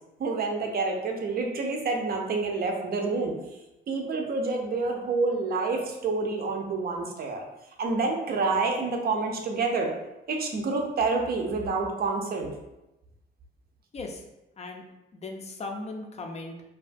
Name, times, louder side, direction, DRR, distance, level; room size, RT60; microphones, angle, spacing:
voice 1, 0.2-3.3 3.9-7.4 7.8-9.9 10.3-12.5, right 3 dB, 50° right, 2 dB, 0.5 m, -28 dB
voice 2, 13.9-14.2 14.6-14.9 15.1-16.6, left 3 dB, 35° left, 3 dB, 0.4 m, -37 dB
2.3 x 2.3 x 2.5 m, 0.95 s
cardioid pair, 90°, 20 cm